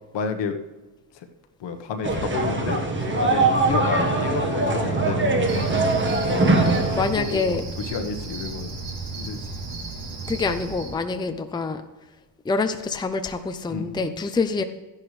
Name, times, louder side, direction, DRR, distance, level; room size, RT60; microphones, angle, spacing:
voice 1, 0.1-0.6 1.1-1.3 1.6-5.4 6.3-6.4 6.9-8.7 9.2-9.4 13.7-14.1, left 5 dB, 65° left, 6 dB, 1.3 m, -30 dB
sound 1, 2.0-7.0, right 2 dB, 25° right, 1.5 m, -22 dB
Cricket, 5.5-10.9, right 3 dB, 55° right, 3.0 m, -34 dB
voice 2, 6.9-7.6 10.3-11.8 12.4-14.6, left 4 dB, 10° left, 7 dB, 0.6 m, -26 dB
13.0 x 10.5 x 3.3 m, 1.2 s
supercardioid pair, 85°, 47 cm